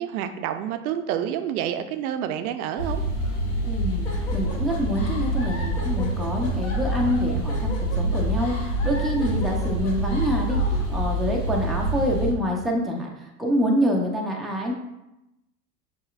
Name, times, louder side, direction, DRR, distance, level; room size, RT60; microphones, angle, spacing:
voice 1, 0.0-3.0, right 10 dB, 70° right, 9 dB, 0.5 m, -28 dB
sound 1, 2.8-12.3, right 1 dB, 70° left, 1.4 m, -26 dB
voice 2, 3.6-14.7, equal, ahead, -1 dB, 0.5 m, -26 dB
sound 2, 4.0-10.9, left 2 dB, 30° left, 0.9 m, -38 dB
5.4 x 3.0 x 2.4 m, 0.91 s
hypercardioid pair, 95°, 47 cm